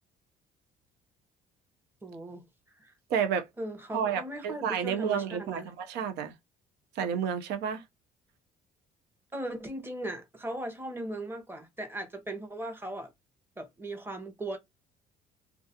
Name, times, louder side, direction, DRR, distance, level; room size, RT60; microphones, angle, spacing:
voice 1, 2.0-2.4 2.8-2.9 3.6-5.7 9.3-13.1 13.6-14.6, right 1 dB, 15° right, 0.7 m, -38 dB
voice 2, 3.1-3.5 3.9-6.3 7.0-7.8, right 7 dB, 80° right, 0.5 m, -30 dB
2.3 x 2.3 x 2.7 m
cardioid pair, 110°, 17 cm